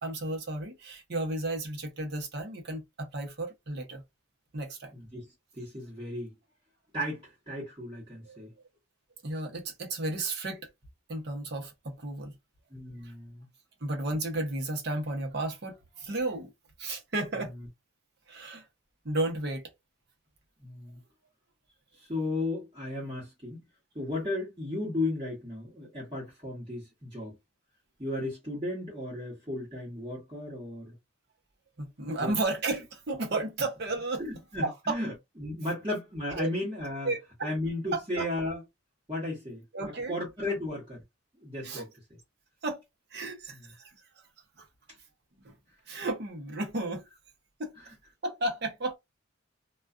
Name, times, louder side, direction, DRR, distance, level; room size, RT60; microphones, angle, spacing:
voice 1, 0.0-4.0 4.5-4.9 8.3-8.4 9.2-10.7 11.1-12.4 13.0-13.1 13.8-16.5 16.8-17.5 18.3-18.6 19.0-19.6 31.8-34.2 34.6-34.9 36.3-36.5 37.0-37.5 37.9-38.3 39.7-40.1 40.5-40.6 41.6-41.9 42.6-42.8 43.1-43.9 45.4-45.6 45.9-47.1 47.6-47.8 48.2-49.0, right 2 dB, 55° right, 0.8 m, -33 dB
voice 2, 4.9-5.3 5.6-6.3 6.9-8.5 12.7-13.5 20.6-21.0 22.0-23.6 23.9-27.4 28.0-30.9 32.2-32.3 34.2-37.1 37.4-38.6 39.1-39.6 40.1-41.0 41.4-41.9 43.5-43.6, left 2 dB, 25° right, 1.1 m, -35 dB
2.4 x 2.2 x 2.4 m
head